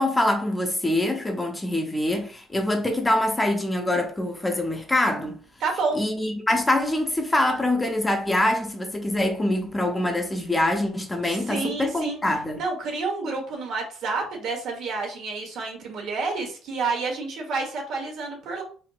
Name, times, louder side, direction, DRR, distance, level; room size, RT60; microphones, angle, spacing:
voice 1, 0.0-5.4 5.9-12.6, left 1 dB, 15° left, 0.6 m, -24 dB
voice 2, 5.6-6.0 11.2-12.2 12.5-18.6, right 4 dB, 70° right, 1.1 m, -29 dB
3.4 x 2.7 x 2.4 m
cardioid pair, 95°, 0 cm